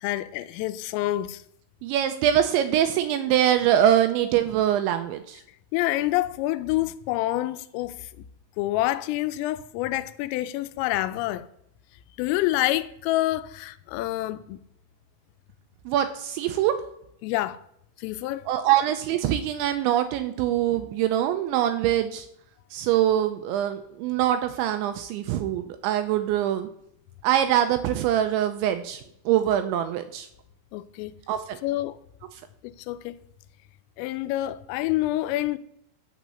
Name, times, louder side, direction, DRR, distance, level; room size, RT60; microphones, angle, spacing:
voice 1, 0.0-1.4 5.7-8.3 8.6-11.5 12.2-14.6 17.2-17.6 18.0-18.5 30.7-31.1 31.6-32.0 32.6-33.2 34.0-35.6, left 16 dB, 85° left, 3.3 m, -27 dB
voice 2, 1.8-5.4 15.9-16.7 18.5-22.3 22.7-26.7 27.2-30.3 31.3-31.6 32.3-32.4, right 11 dB, 85° right, 2.7 m, -23 dB
14.5 x 5.2 x 6.8 m
omnidirectional pair, 5.8 m